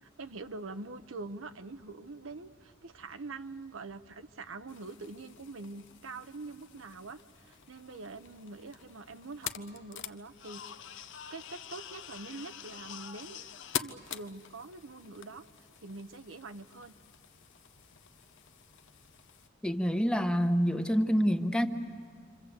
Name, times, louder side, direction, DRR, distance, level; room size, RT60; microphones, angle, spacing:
voice 1, 0.0-13.4 13.7-15.4 15.8-16.9, right 3 dB, 70° right, 9 dB, 0.9 m, -44 dB
sound 1, 4.7-19.5, left 9 dB, 65° left, 0.8 m, -45 dB
voice 2, 19.6-21.7, equal, 5° left, 7 dB, 1.1 m, -27 dB
27.5 x 26.5 x 8.1 m, 2.1 s
head